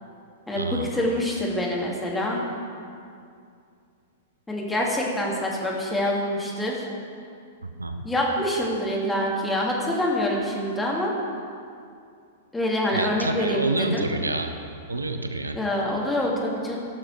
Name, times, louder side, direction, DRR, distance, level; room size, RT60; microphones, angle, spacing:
voice 1, 0.5-2.4 4.5-6.9 8.0-11.1 12.5-14.1 15.5-16.8, left 1 dB, 10° left, -3 dB, 2.2 m, -26 dB
voice 2, 7.6-8.0 12.9-14.5 14.9-15.6, right 2 dB, 85° right, 7 dB, 0.7 m, -28 dB
16.0 x 6.5 x 4.6 m, 2.4 s
figure-of-eight pair, 100°, 0 cm